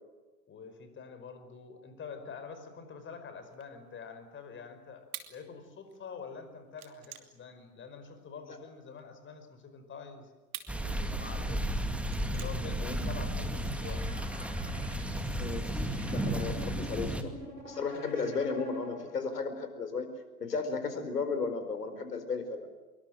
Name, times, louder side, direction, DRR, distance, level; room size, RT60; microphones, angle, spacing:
voice 1, 0.5-10.3 10.8-11.6 12.3-14.1, left 5 dB, 25° left, 8 dB, 5.2 m, -46 dB
sound 1, 3.5-9.0 9.5-13.0, right 10 dB, 60° right, 2.9 m, -49 dB
sound 2, 10.7-17.2, right 1 dB, ahead, 2.2 m, -33 dB
sound 3, 13.2-19.4, right 1 dB, 90° right, 6.8 m, -49 dB
voice 2, 16.1-17.3 17.6-20.1 20.4-22.7, left 4 dB, 70° left, 9 dB, 4.7 m, -34 dB
25.5 x 23.0 x 7.7 m, 1.2 s
figure-of-eight pair, 90°, 49 cm